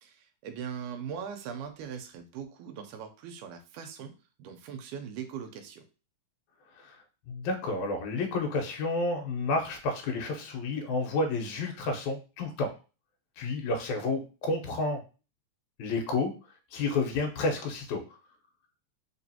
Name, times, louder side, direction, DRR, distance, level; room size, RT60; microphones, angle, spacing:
voice 1, 0.0-4.1 4.4-5.8, right 7 dB, 90° right, 6 dB, 2.2 m, -40 dB
voice 2, 7.3-12.7 13.4-15.0 15.8-16.3 16.7-18.0, left 3 dB, 75° left, 3 dB, 2.1 m, -30 dB
4.8 x 3.0 x 2.8 m, 0.33 s
omnidirectional pair, 3.5 m